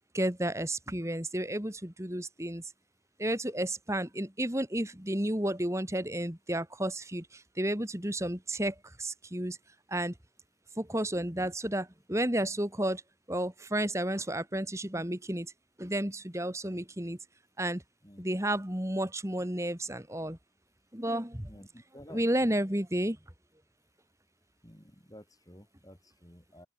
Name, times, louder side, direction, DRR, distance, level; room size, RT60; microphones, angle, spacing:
voice 1, 0.1-2.6 3.2-9.6 9.9-10.1 10.8-13.0 13.3-15.5 15.8-17.2 17.6-17.8 18.2-20.4 20.9-21.5 22.1-23.2, right 1 dB, 15° right, 2.4 m, -32 dB
voice 2, 21.5-22.5 24.6-26.7, equal, 20° left, 5.2 m, -52 dB
head